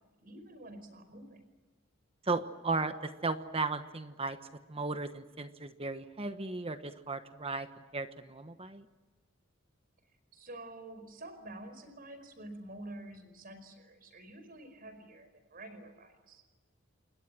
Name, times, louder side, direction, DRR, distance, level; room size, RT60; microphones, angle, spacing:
voice 1, 0.2-1.4 10.3-16.4, right 1 dB, 50° right, 10 dB, 5.0 m, -48 dB
voice 2, 2.2-4.4 4.7-8.9, right 3 dB, 30° right, 9 dB, 1.1 m, -35 dB
28.5 x 21.5 x 7.6 m, 1.3 s
head